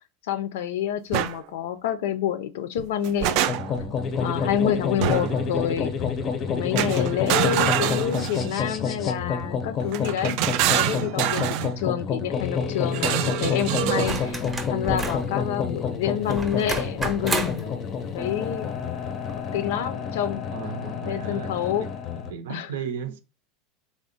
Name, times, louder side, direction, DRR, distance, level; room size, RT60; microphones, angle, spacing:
voice 1, 0.3-3.7 4.2-5.9 6.5-10.4 10.7-14.4 14.7-17.7 18.1-18.7 19.3-20.4 21.1-21.9 22.5-22.7, left 10 dB, 80° left, 0.5 m, -28 dB
sound 1, 1.1-1.4 2.8-3.9 5.0-5.4 6.8-8.6 9.9-11.7 12.9-14.3, right 12 dB, 55° right, 0.3 m, -26 dB
sound 2, 3.5-22.3, left 5 dB, 30° left, 0.5 m, -29 dB
sound 3, 14.0-15.3 16.3-17.7 19.3-19.4, right 2 dB, 10° right, 0.6 m, -30 dB
voice 2, 20.5-21.9 22.1-23.2, right 7 dB, 90° right, 0.6 m, -35 dB
3.5 x 2.0 x 3.9 m
supercardioid pair, 145°, 0 cm